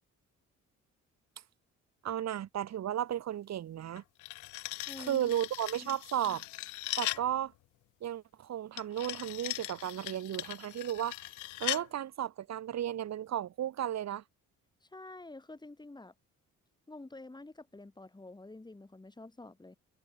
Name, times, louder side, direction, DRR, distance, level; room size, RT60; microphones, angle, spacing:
voice 1, 2.0-4.0 5.1-6.4 7.0-7.5 8.0-11.2 11.6-14.2, right 11 dB, 60° right, 1.5 m, -34 dB
sound 1, 4.0-7.3 8.8-11.9, left 19 dB, 80° left, 0.5 m, -39 dB
voice 2, 4.9-5.3 5.8-6.0 6.2-6.4 14.8-16.1 16.9-19.8, left 2 dB, 15° left, 3.6 m, -48 dB
cardioid pair, 90°, 30 cm